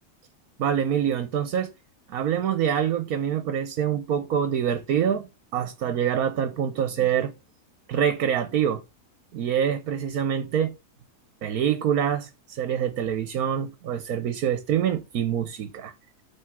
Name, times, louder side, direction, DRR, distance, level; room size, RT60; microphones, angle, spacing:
voice 1, 0.6-1.7 2.1-5.3 5.5-7.3 7.9-8.8 9.3-10.7 11.4-15.9, right 9 dB, 75° right, 1.3 m, -25 dB
9.3 x 3.6 x 6.3 m
omnidirectional pair, 1.6 m